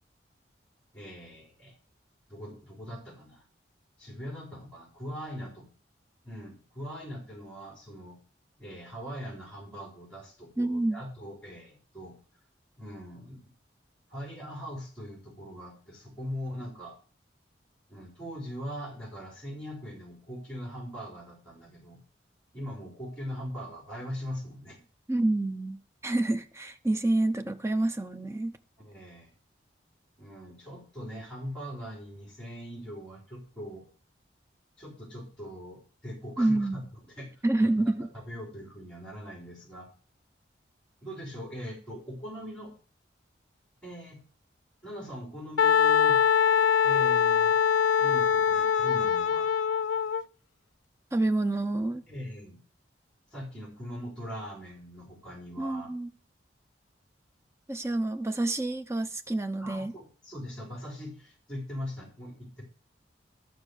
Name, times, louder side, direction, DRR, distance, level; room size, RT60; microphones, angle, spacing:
voice 1, 0.9-1.8 2.3-3.4 4.0-5.7 6.2-8.2 8.6-12.1 12.8-13.4 14.1-16.9 17.9-22.0 22.5-24.8 28.8-29.3 30.2-33.8 34.8-37.7 38.1-39.9 41.0-42.7 43.8-44.2 44.8-46.2 46.8-47.5 48.0-49.5 52.1-52.6 53.3-55.9 59.6-62.6, equal, 5° left, 3.9 m, -41 dB
voice 2, 10.6-11.0 25.1-28.5 36.4-36.8 37.4-38.1 51.1-52.0 55.6-56.1 57.7-59.9, right 2 dB, 15° right, 0.6 m, -28 dB
Wind instrument woodwind instrument, 45.6-50.2, left 7 dB, 85° left, 0.4 m, -23 dB
12.0 x 6.2 x 6.4 m
head